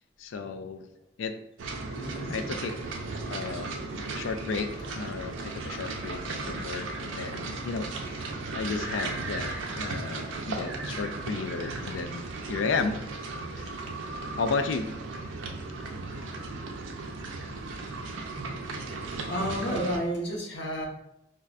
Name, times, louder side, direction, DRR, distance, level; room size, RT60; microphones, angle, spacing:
voice 1, 0.2-0.8 1.2-1.4 2.3-2.8 3.3-13.1 13.6-13.7 14.4-14.9, left 4 dB, 85° left, 8 dB, 0.4 m, -33 dB
sound 1, 1.6-20.0, right 3 dB, 85° right, 0.5 m, -36 dB
voice 2, 2.0-2.3 19.3-20.9, equal, 65° left, -2 dB, 0.9 m, -31 dB
5.3 x 2.1 x 2.4 m, 0.80 s
head